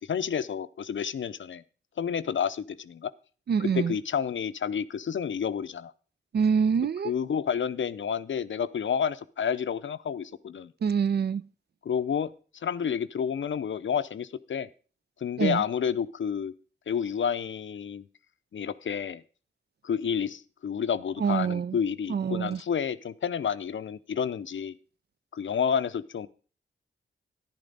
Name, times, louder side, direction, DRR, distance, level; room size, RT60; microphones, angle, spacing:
voice 1, 0.0-1.6 2.0-3.1 3.7-5.9 7.0-10.7 11.9-12.3 12.6-14.7 15.2-16.5 16.9-18.1 18.5-19.2 19.8-24.7 25.3-26.3, left 7 dB, 65° left, 0.5 m, -30 dB
voice 2, 3.5-4.0 6.3-7.1 10.8-11.4 15.4-15.6 21.2-21.8 22.1-22.6, right 6 dB, 50° right, 0.4 m, -25 dB
10.5 x 10.5 x 4.0 m
cardioid pair, 40°, 21 cm